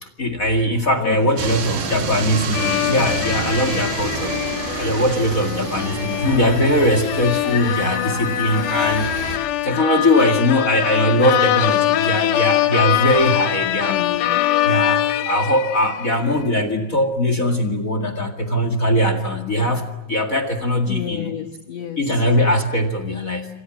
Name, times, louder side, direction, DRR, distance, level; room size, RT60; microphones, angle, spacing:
voice 1, 0.0-4.4 4.7-9.1 9.6-14.0 14.6-21.3 22.0-23.5, left 1 dB, 35° left, 10 dB, 1.4 m, -20 dB
voice 2, 1.0-1.4 13.9-14.5 20.9-22.2, left 9 dB, 60° left, 8 dB, 1.9 m, -30 dB
sound 1, 1.4-9.4, right 5 dB, 65° right, 5.1 m, -29 dB
sound 2, 2.5-16.2, left 13 dB, 85° left, 3.3 m, -23 dB
27.5 x 25.5 x 7.6 m, 0.98 s
omnidirectional pair, 4.7 m